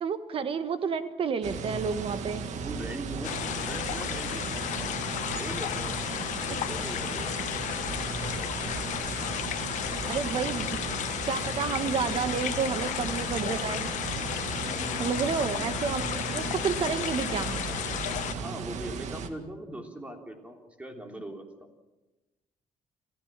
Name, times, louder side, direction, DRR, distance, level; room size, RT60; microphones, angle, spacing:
voice 1, 0.0-2.4 10.0-10.8 11.3-13.8 15.0-17.7, right 6 dB, 45° right, 11 dB, 1.4 m, -30 dB
sound 1, 1.4-19.3, right 6 dB, 70° right, 1.9 m, -36 dB
voice 2, 2.4-6.0 6.5-7.6 14.6-15.3 18.3-21.9, right 1 dB, 10° right, 3 dB, 3.2 m, -41 dB
sound 2, 3.2-18.3, left 12 dB, 75° left, 1.1 m, -33 dB
26.5 x 15.5 x 7.4 m, 1.1 s
cardioid pair, 135°, 13 cm